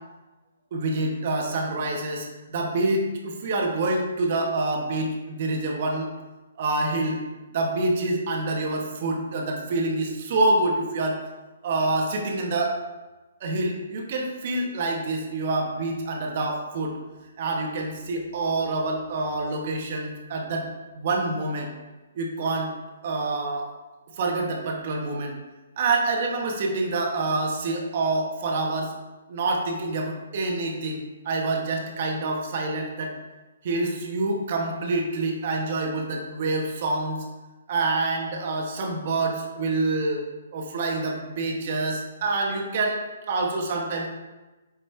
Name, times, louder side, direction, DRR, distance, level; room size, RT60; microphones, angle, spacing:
voice 1, 0.7-6.1 6.6-7.2 7.5-11.2 11.6-12.7 13.4-16.9 17.4-20.7 20.9-21.7 22.1-22.7 23.0-23.7 24.2-25.3 25.8-28.9 29.3-33.2 33.6-37.2 37.7-40.2 40.5-43.0 43.3-44.1, right 2 dB, 50° right, 1 dB, 1.2 m, -26 dB
9.7 x 3.2 x 3.3 m, 1.1 s
hypercardioid pair, 135°, 0 cm